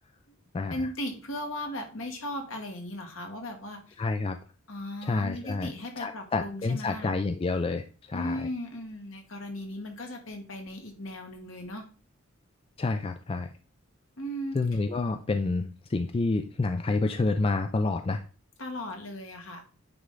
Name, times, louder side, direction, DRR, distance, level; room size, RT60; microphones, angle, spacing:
voice 1, 0.7-4.0 4.7-7.2 8.1-11.9 14.2-14.6 18.6-19.7, left 1 dB, 70° left, 3 dB, 1.5 m, -37 dB
voice 2, 4.0-4.4 5.0-5.7 6.0-8.5 12.8-13.5 14.5-18.2, left 3 dB, 25° left, 7 dB, 0.4 m, -28 dB
9.5 x 3.3 x 3.7 m, 0.36 s
head